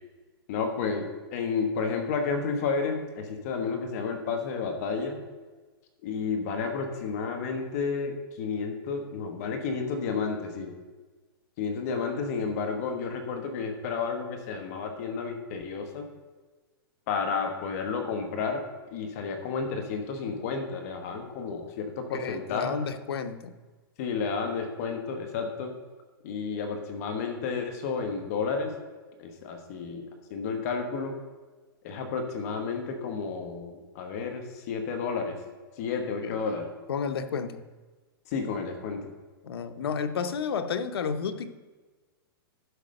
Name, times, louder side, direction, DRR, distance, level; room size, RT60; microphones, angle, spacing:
voice 1, 0.5-5.2 6.0-10.7 11.6-16.1 17.1-18.6 18.9-22.8 24.0-25.7 26.2-28.7 29.2-31.2 31.8-35.4 35.8-36.7 38.3-39.1, left 5 dB, 40° left, 5 dB, 1.2 m, -31 dB
voice 2, 22.1-23.5 36.2-36.3 36.9-37.6 39.4-41.6, left 6 dB, 90° left, 9 dB, 0.8 m, -31 dB
11.5 x 4.9 x 6.5 m, 1.3 s
hypercardioid pair, 165°, 12 cm